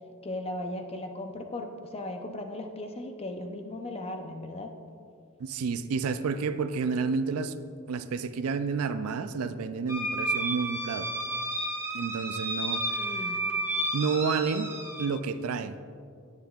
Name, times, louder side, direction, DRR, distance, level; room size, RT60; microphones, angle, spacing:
voice 1, 0.2-4.7 12.9-13.4, left 1 dB, 30° left, 5 dB, 0.6 m, -37 dB
voice 2, 5.4-7.6 7.9-11.1 11.9-13.2 13.9-14.7 15.0-15.8, right 5 dB, 75° right, 11 dB, 0.4 m, -30 dB
sound 1, 9.9-15.1, right 1 dB, 10° right, 1.0 m, -31 dB
10.0 x 9.7 x 2.4 m, 2.3 s
head